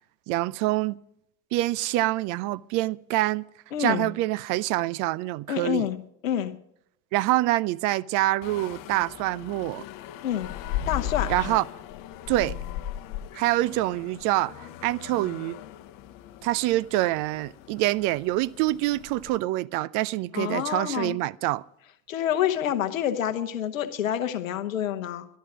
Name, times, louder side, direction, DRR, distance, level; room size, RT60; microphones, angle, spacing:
voice 1, 0.3-1.0 1.5-3.4 3.8-5.9 7.1-9.8 11.3-11.6 12.3-12.5 13.3-15.6 16.4-21.6, right 17 dB, 50° right, 0.5 m, -26 dB
voice 2, 3.7-4.1 5.5-6.0 6.2-6.5 10.2-10.5 10.9-11.6 13.3-13.4 20.3-21.2 22.1-25.3, left 10 dB, 80° left, 1.0 m, -28 dB
sound 1, 8.4-19.4, left 11 dB, 55° left, 0.9 m, -38 dB
13.0 x 11.5 x 6.1 m
figure-of-eight pair, 65°, 40 cm